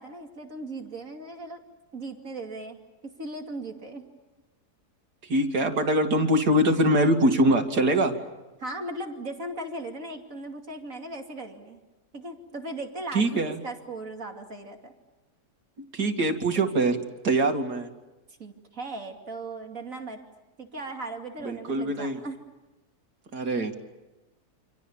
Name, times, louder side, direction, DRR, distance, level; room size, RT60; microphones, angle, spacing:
voice 1, 0.0-1.6 1.9-2.8 3.2-4.0 8.6-11.8 12.1-14.9 18.4-20.2 20.6-22.4, right 2 dB, 55° right, 3 dB, 3.0 m, -37 dB
voice 2, 5.3-8.1 13.1-13.6 15.9-17.0 17.2-17.9 21.4-22.2 23.3-23.8, right 1 dB, 90° right, 4 dB, 2.9 m, -23 dB
29.5 x 26.5 x 7.2 m, 1.1 s
omnidirectional pair, 1.7 m